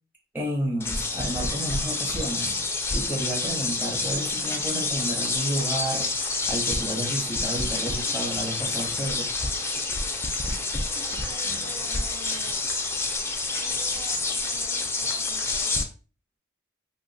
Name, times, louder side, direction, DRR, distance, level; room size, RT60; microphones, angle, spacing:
voice 1, 0.3-2.6 2.9-6.1 6.5-9.3, right 1 dB, 10° right, 0.9 m, -31 dB
sound 1, 0.8-15.8, left 3 dB, 10° left, 0.4 m, -28 dB
voice 2, 11.0-12.6 13.6-15.9, right 3 dB, 90° right, 1.2 m, -47 dB
2.8 x 2.3 x 3.9 m
head